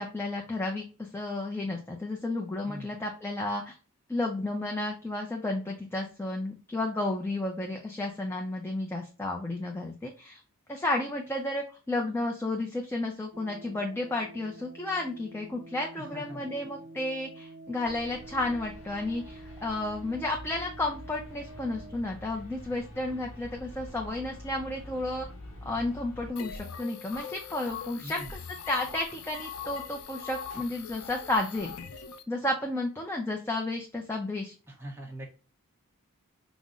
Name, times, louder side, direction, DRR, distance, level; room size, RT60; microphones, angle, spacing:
voice 1, 0.0-3.8 4.1-10.4 10.7-25.3 25.6-28.2 28.7-31.7 32.3-34.5, left 2 dB, 10° left, 1 dB, 0.4 m, -32 dB
voice 2, 2.7-3.0 16.0-16.8 28.0-28.4 34.7-35.3, right 1 dB, 10° right, -1 dB, 0.8 m, -43 dB
sound 1, 13.3-22.0, right 2 dB, 50° right, 0.5 m, -48 dB
sound 2, 17.8-26.3, left 1 dB, 70° left, 0.9 m, -46 dB
sound 3, 26.4-32.2, left 7 dB, 85° left, 0.5 m, -41 dB
5.2 x 2.0 x 2.4 m, 0.36 s
head